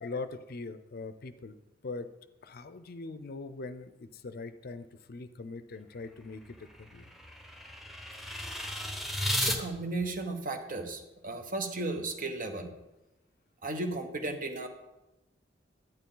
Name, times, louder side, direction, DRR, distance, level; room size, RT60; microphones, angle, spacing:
voice 1, 0.0-1.6 1.8-2.1 2.4-7.0, left 3 dB, 55° left, 12 dB, 0.5 m, -41 dB
sound 1, 6.0-9.6, left 1 dB, ahead, 1.0 m, -35 dB
voice 2, 9.3-12.7 13.6-14.7, right 2 dB, 45° right, 6 dB, 1.1 m, -35 dB
11.0 x 8.9 x 3.9 m, 0.99 s
head